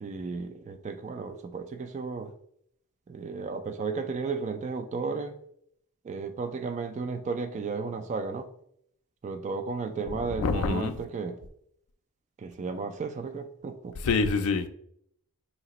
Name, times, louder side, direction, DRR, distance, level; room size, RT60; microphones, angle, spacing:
voice 1, 0.0-2.3 3.1-5.4 6.0-8.5 9.2-11.4 12.4-14.0, right 4 dB, 30° right, 0.3 m, -34 dB
voice 2, 10.3-11.0 14.0-14.7, left 4 dB, 65° left, 0.4 m, -26 dB
4.8 x 2.9 x 2.9 m
head